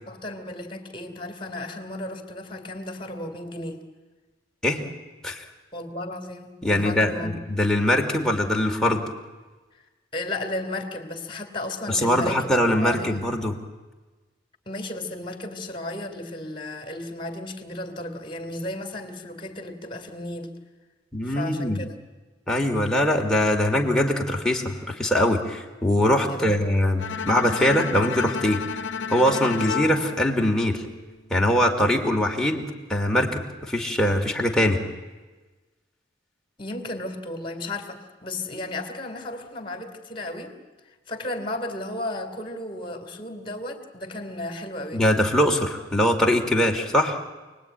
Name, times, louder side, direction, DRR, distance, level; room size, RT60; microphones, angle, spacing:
voice 1, 0.1-3.8 5.7-7.5 10.1-12.4 12.8-13.2 14.7-20.5 21.2-22.0 26.3-26.7 36.6-40.5 41.1-45.0, left 1 dB, 25° left, 6 dB, 3.2 m, -34 dB
voice 2, 6.6-9.0 11.9-13.5 21.1-21.8 22.5-28.6 29.1-30.8 31.3-34.8 44.9-47.2, left 1 dB, 5° left, 0 dB, 2.6 m, -22 dB
Bowed string instrument, 27.0-31.2, left 6 dB, 65° left, 0.9 m, -32 dB
28.5 x 20.5 x 9.3 m, 1.3 s
head